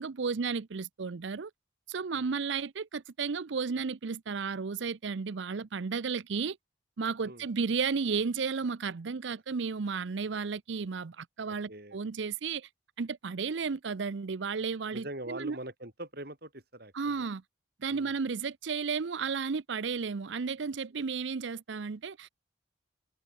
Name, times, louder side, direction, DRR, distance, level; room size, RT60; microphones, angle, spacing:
voice 1, 0.0-1.5 1.9-6.6 7.0-12.7 13.0-15.6 16.9-17.4 17.8-22.3, right 5 dB, 70° right, 0.6 m, -33 dB
voice 2, 11.5-12.0 14.9-17.3 17.9-18.2, right 1 dB, 50° right, 5.2 m, -43 dB
head